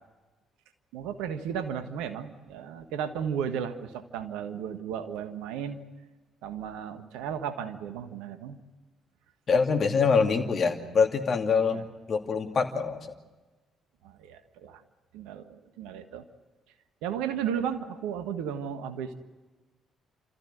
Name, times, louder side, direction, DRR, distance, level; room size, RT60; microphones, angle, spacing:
voice 1, 0.9-5.8 6.4-8.6 11.7-11.9 14.0-14.8 15.1-16.2 17.0-19.1, right 8 dB, 75° right, 9 dB, 1.5 m, -34 dB
voice 2, 9.5-13.1, left 5 dB, 50° left, 4 dB, 2.6 m, -25 dB
29.5 x 14.5 x 9.4 m, 1.2 s
hypercardioid pair, 45°, 0 cm